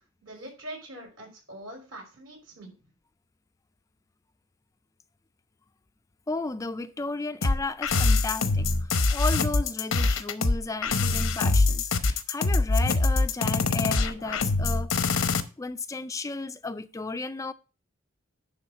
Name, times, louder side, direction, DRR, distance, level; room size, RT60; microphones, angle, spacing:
voice 1, 0.2-2.7, right 1 dB, 75° right, 5.2 m, -43 dB
voice 2, 6.3-15.3 15.6-17.5, left 3 dB, 15° left, 0.3 m, -34 dB
sound 1, 7.4-15.4, left 3 dB, 90° left, 0.9 m, -24 dB
11.0 x 3.6 x 6.1 m
head